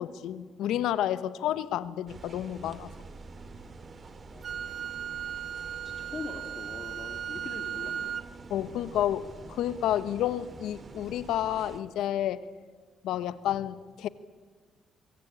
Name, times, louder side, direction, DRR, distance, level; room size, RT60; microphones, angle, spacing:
voice 1, 0.0-2.9 8.5-12.4 13.0-14.1, left 11 dB, 85° left, 15 dB, 1.1 m, -30 dB
sound 1, 2.1-11.8, right 3 dB, 40° right, 2.5 m, -47 dB
Wind instrument woodwind instrument, 4.4-8.3, right 9 dB, 55° right, 0.7 m, -36 dB
voice 2, 5.8-8.2, left 4 dB, 40° left, 4 dB, 2.6 m, -42 dB
24.5 x 23.0 x 8.7 m, 1.5 s
cardioid pair, 90°, 0 cm